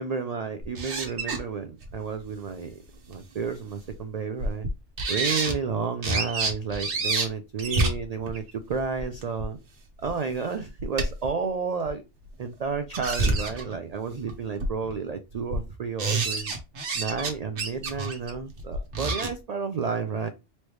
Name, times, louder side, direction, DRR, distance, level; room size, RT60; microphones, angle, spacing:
voice 1, 0.0-2.8 3.1-4.7 5.1-9.6 10.0-12.0 12.4-16.5 16.9-20.3, right 5 dB, 85° right, 0.3 m, -31 dB
sound 1, 0.6-1.4 1.8-1.9 3.1-3.2 3.9-4.0 4.4-4.7 5.0-5.5 6.0-7.3 7.6-9.4 10.0-10.1 10.4-11.3 11.9-12.0 12.7-13.7 14.3-14.4 14.6-14.9 15.3-15.6 16.0-17.3 17.6-19.3, right 3 dB, 70° right, 1.3 m, -28 dB
4.1 x 3.3 x 3.0 m
omnidirectional pair, 1.2 m